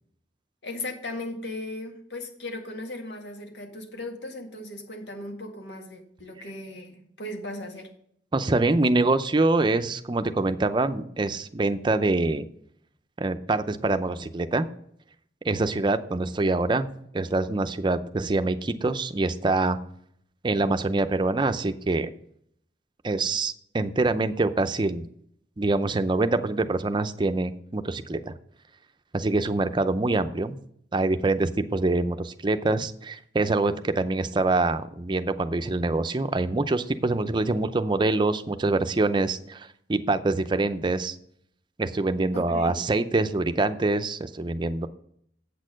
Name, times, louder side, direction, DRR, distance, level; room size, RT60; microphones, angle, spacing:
voice 1, 0.6-7.9 42.3-42.8, left 2 dB, 90° left, 3 dB, 1.9 m, -37 dB
voice 2, 8.3-12.4 13.2-14.7 15.4-16.9 17.1-19.8 20.4-22.1 23.0-25.0 25.6-28.3 29.1-30.6 30.9-41.2 41.8-44.9, right 2 dB, 25° right, 10 dB, 0.5 m, -25 dB
8.3 x 6.4 x 6.3 m, 0.68 s
head